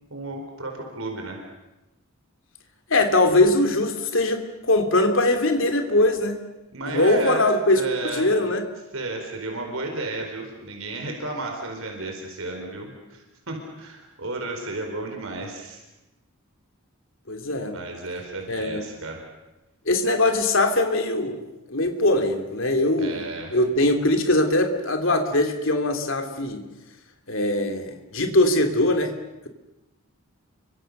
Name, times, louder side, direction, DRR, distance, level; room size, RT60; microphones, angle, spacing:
voice 1, 0.1-1.4 6.7-7.4 7.7-8.3 8.9-15.8 17.7-19.2 23.0-23.5, right 2 dB, 70° right, 2 dB, 4.8 m, -33 dB
voice 2, 2.9-6.4 6.9-8.6 17.3-17.7 18.5-18.8 19.8-21.4 21.7-23.2 23.5-26.7 27.3-29.1, left 2 dB, 60° left, 5 dB, 3.1 m, -21 dB
30.0 x 25.0 x 6.7 m, 1.0 s
head